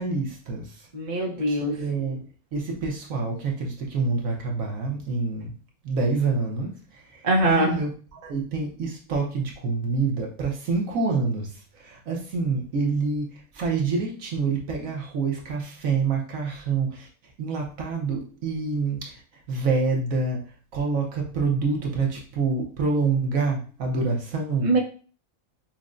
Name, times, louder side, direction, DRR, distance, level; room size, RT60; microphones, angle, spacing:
voice 1, 0.0-0.9 1.5-5.5 5.8-17.1 17.4-19.2 19.5-24.7, right 4 dB, 70° right, 0 dB, 1.2 m, -27 dB
voice 2, 0.9-1.8 7.2-7.7 24.6-24.8, right 1 dB, 40° right, -1 dB, 0.8 m, -22 dB
5.8 x 2.1 x 2.5 m, 0.39 s
omnidirectional pair, 1.5 m